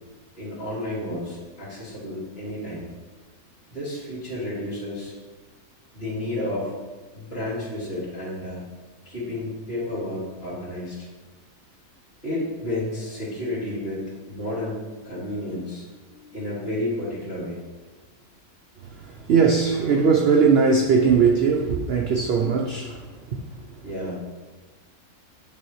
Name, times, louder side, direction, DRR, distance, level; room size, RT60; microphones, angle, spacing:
voice 1, 0.4-2.9 3.7-5.1 5.9-6.8 7.1-8.6 9.0-11.1 12.2-14.0 14.3-17.6 19.9-20.0 23.8-24.2, left 1 dB, 30° left, -10 dB, 2.2 m, -31 dB
voice 2, 18.8-23.7, right 5 dB, 80° right, 2 dB, 0.5 m, -20 dB
9.2 x 3.5 x 3.1 m, 1.3 s
omnidirectional pair, 1.6 m